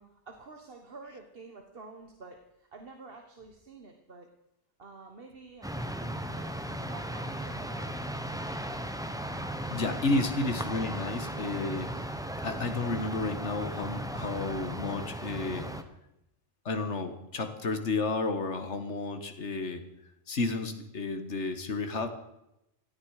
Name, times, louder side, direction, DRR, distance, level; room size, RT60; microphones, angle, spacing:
voice 1, 0.0-4.3 4.8-7.9, right 3 dB, 55° right, 4 dB, 1.6 m, -49 dB
sound 1, 5.6-15.8, right 1 dB, 5° right, 1.0 m, -36 dB
voice 2, 9.7-11.9 12.4-15.7 16.6-19.8 20.3-22.1, left 3 dB, 75° left, 8 dB, 1.7 m, -32 dB
18.0 x 13.5 x 4.9 m, 0.86 s
omnidirectional pair, 1.2 m